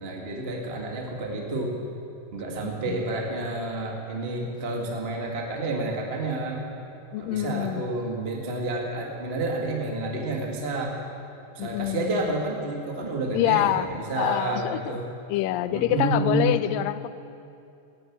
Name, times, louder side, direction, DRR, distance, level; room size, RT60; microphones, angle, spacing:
voice 1, 0.0-1.7 2.3-6.6 7.2-11.0 11.5-15.1 15.7-16.5, right 2 dB, 30° right, 0 dB, 1.2 m, -29 dB
voice 2, 7.1-7.8 11.6-12.3 13.3-13.9 14.2-15.0 15.3-17.1, left 14 dB, 90° left, 14 dB, 2.3 m, -26 dB
14.5 x 10.5 x 8.6 m, 2.6 s
omnidirectional pair, 3.9 m